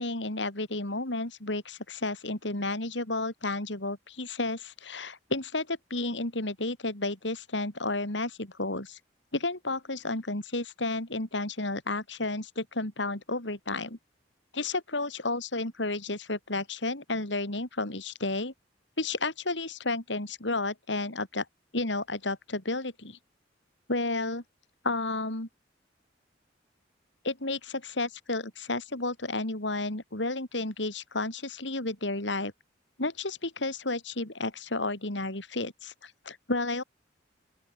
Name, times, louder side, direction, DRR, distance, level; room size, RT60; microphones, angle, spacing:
voice 1, 0.0-9.0 9.3-14.0 14.5-18.5 19.0-21.5 21.7-23.2 23.9-24.4 24.8-25.5 27.2-32.5 33.0-36.8, left 2 dB, 75° left, 4.2 m, -32 dB
open air
head